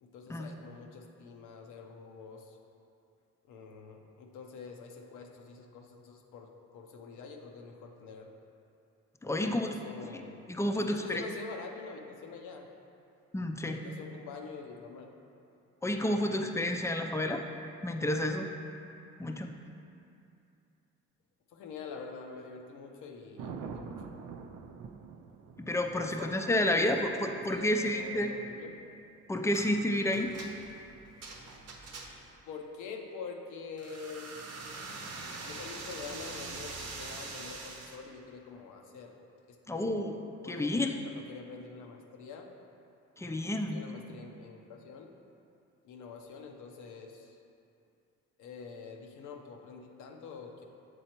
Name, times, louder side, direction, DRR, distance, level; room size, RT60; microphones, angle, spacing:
voice 1, 0.0-2.6 3.4-8.3 9.3-10.4 10.7-12.7 13.6-15.2 21.5-24.0 25.9-27.1 27.3-28.8 32.5-34.4 35.4-39.2 39.5-40.1 40.4-42.5 43.4-45.1 45.8-47.4 48.4-50.6, left 5 dB, 85° left, 2 dB, 0.7 m, -46 dB
voice 2, 9.2-9.7 10.5-11.2 13.3-13.8 15.8-17.4 17.8-18.5 19.2-19.5 25.6-28.3 29.3-30.3 39.7-40.1 40.5-40.9 43.2-43.9, left 1 dB, 10° left, 4 dB, 0.4 m, -30 dB
Thunder, 23.4-31.4 34.1-34.5, right 6 dB, 80° right, 0.5 m, -48 dB
sound 1, 29.5-29.7 30.1-32.4 33.8-38.0, right 3 dB, 55° right, 0.8 m, -43 dB
7.8 x 4.2 x 2.9 m, 2.6 s
cardioid pair, 90°, 30 cm